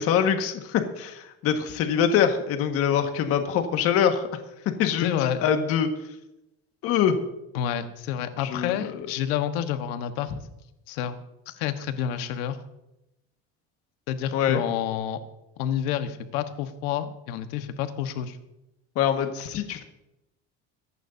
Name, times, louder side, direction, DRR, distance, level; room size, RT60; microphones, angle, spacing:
voice 1, 0.0-4.2 4.8-5.9 6.8-7.1 8.4-9.1 14.3-14.6 18.9-19.8, left 8 dB, 50° left, 5 dB, 1.7 m, -24 dB
voice 2, 5.0-5.5 7.5-10.3 10.9-12.6 14.1-15.2 15.6-18.4, left 9 dB, 90° left, 8 dB, 1.4 m, -29 dB
23.5 x 11.0 x 2.8 m, 0.90 s
cardioid pair, 155°, 29 cm